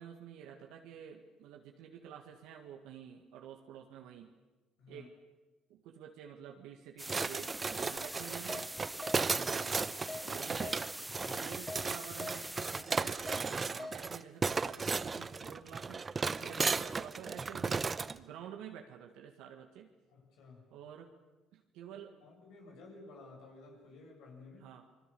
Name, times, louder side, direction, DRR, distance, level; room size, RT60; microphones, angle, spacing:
voice 1, 0.0-4.3 4.9-5.1 5.7-8.7 9.3-9.8 10.2-10.8 11.4-16.1 16.4-19.9 20.7-21.1 21.5-22.1 24.6-24.8, right 9 dB, 75° right, 2 dB, 1.9 m, -50 dB
voice 2, 4.8-5.1 9.1-9.6 11.2-11.5 16.4-16.6 20.1-20.7 21.9-24.7, left 3 dB, 70° left, 1 dB, 7.0 m, -54 dB
sound 1, 7.0-12.8, right 1 dB, 5° right, 1.0 m, -44 dB
sound 2, 7.1-18.2, right 4 dB, 30° right, 0.8 m, -35 dB
Keyboard (musical), 8.0-8.1 8.5-8.6 9.0-9.2 9.6-9.7 10.1-10.2 10.6-10.8 11.1-11.3 11.7-11.8 12.2-12.3 12.7-12.9 13.3-13.4 13.8-13.9, left 2 dB, 25° left, 5.3 m, -43 dB
29.0 x 21.5 x 7.0 m, 1.2 s
hypercardioid pair, 65°, 0 cm